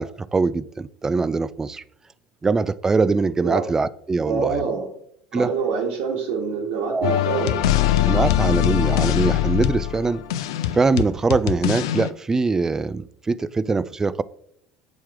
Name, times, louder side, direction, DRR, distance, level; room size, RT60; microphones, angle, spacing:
voice 1, 0.0-1.8 2.4-4.6 5.3-5.5 6.9-7.2 8.1-10.2 10.7-14.2, right 4 dB, 20° right, 0.3 m, -22 dB
voice 2, 4.2-4.9 5.3-7.5, right 5 dB, 75° right, 1.4 m, -26 dB
sound 1, 7.0-12.1, left 13 dB, 85° left, 0.4 m, -22 dB
7.3 x 3.0 x 4.7 m
hypercardioid pair, 85°, 3 cm